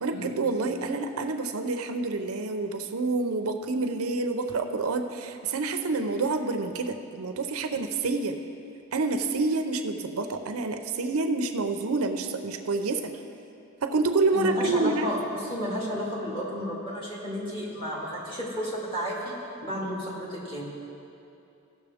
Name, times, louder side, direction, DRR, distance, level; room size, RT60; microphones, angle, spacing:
voice 1, 0.0-8.4 8.9-13.1 13.8-15.1, right 3 dB, 80° right, 7 dB, 0.6 m, -28 dB
voice 2, 14.3-19.3 19.6-20.6, equal, 25° left, -6 dB, 2.1 m, -32 dB
16.0 x 6.5 x 3.5 m, 2.7 s
head